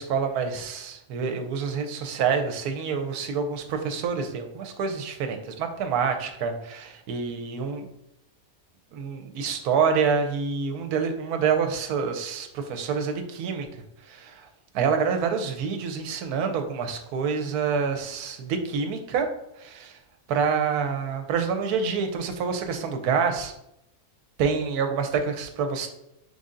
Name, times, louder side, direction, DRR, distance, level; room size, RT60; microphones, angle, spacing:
voice 1, 0.0-7.9 8.9-13.7 14.1-14.5 14.7-19.3 19.6-20.0 20.3-23.5 24.4-25.9, right 6 dB, 85° right, 6 dB, 1.2 m, -27 dB
4.0 x 3.4 x 3.7 m, 0.82 s
omnidirectional pair, 1.6 m